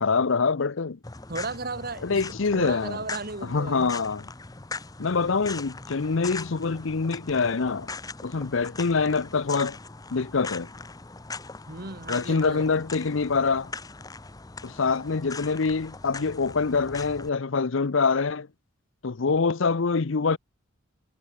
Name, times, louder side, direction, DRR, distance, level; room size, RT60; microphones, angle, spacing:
voice 1, 0.0-1.0 2.0-3.0 3.4-4.2 5.0-7.9 8.2-9.8 10.1-10.7 12.1-13.7 14.6-18.5 19.0-20.4, left 4 dB, 65° left, 0.7 m, -25 dB
sound 1, 1.0-17.3, left 3 dB, 15° left, 0.8 m, -40 dB
voice 2, 1.3-2.2 2.5-3.9 11.7-12.7, right 3 dB, 45° right, 2.3 m, -35 dB
head